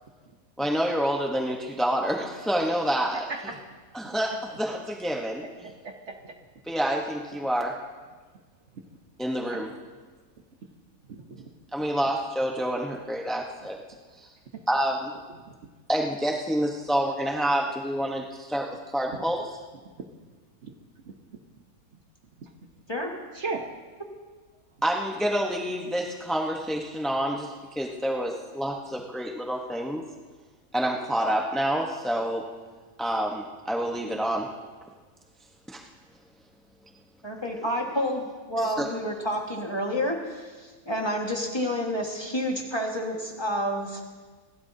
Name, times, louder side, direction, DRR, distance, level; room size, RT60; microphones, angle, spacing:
voice 1, 0.6-3.3 3.9-5.7 6.7-7.8 9.2-9.7 11.7-13.8 14.2-14.3 14.7-15.1 15.9-19.5 24.8-30.0 30.7-32.4 33.0-34.5 35.7-35.8 38.6-38.9, equal, ahead, 0 dB, 0.5 m, -28 dB
voice 2, 5.4-6.3 9.4-9.6 11.1-11.5 11.8-11.9 14.5-14.6 20.6-20.7 21.0-21.1 22.4-22.5 23.3-23.6, right 3 dB, 50° right, 4 dB, 1.2 m, -37 dB
voice 3, 37.2-44.0, equal, 15° left, 0 dB, 1.5 m, -29 dB
26.5 x 12.5 x 2.7 m, 1.4 s
omnidirectional pair, 1.7 m